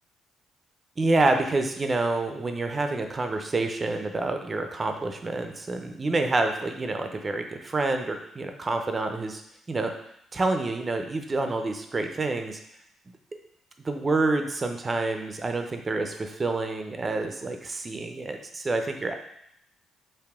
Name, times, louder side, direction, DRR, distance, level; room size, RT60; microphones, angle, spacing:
voice 1, 1.0-9.4 9.7-9.9 10.3-12.6 13.8-19.1, right 2 dB, 30° right, 5 dB, 0.6 m, -27 dB
4.8 x 3.0 x 3.5 m, 0.75 s
cardioid pair, 90°, 0 cm